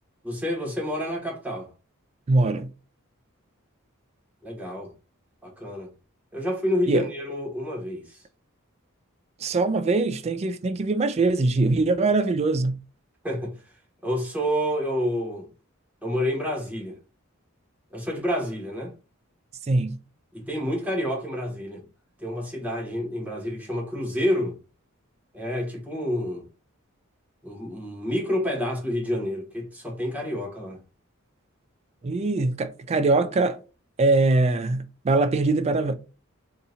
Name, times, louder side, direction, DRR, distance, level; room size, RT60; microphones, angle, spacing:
voice 1, 0.2-1.7 4.4-4.9 5.4-5.9 6.3-8.2 13.2-13.5 14.0-15.5 16.0-17.0 17.9-18.9 20.3-21.8 22.2-24.6 25.3-26.5 27.4-30.8, equal, 5° right, 0.9 m, -28 dB
voice 2, 2.3-2.7 6.9-7.1 9.4-12.8 19.7-20.0 32.0-33.6 34.0-35.9, right 3 dB, 30° right, 0.3 m, -22 dB
2.8 x 2.6 x 4.1 m
head